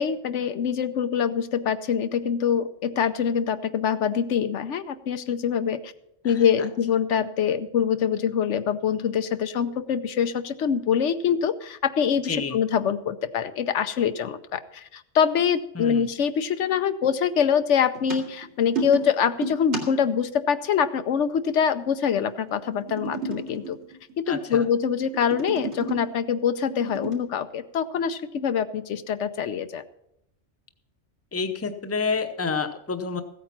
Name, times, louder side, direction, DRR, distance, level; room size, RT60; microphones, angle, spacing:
voice 1, 0.0-5.9 6.2-23.8 24.2-29.8, left 7 dB, 80° left, 11 dB, 1.1 m, -24 dB
voice 2, 15.7-16.1 24.3-24.6 31.3-33.2, left 4 dB, 15° left, 7 dB, 0.7 m, -28 dB
sound 1, 17.9-20.2 22.5-24.3 24.8-26.1 26.6-27.1, right 3 dB, 75° right, 2.8 m, -33 dB
15.5 x 8.8 x 5.9 m, 0.78 s
omnidirectional pair, 1.2 m